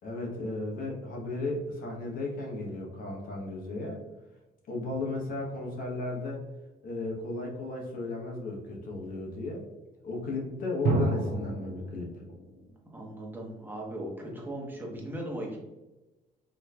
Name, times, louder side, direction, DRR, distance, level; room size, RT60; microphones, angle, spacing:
voice 1, 0.0-4.0 4.7-6.4 6.8-9.6 10.0-12.1, left 2 dB, 55° left, 0 dB, 1.0 m, -35 dB
sound 1, 4.8-6.1 10.8-12.7, right 2 dB, 55° right, 0.8 m, -32 dB
voice 2, 12.9-15.6, right 1 dB, 10° right, -2 dB, 1.1 m, -38 dB
4.3 x 2.7 x 2.3 m, 1.1 s
cardioid pair, 110°, 17 cm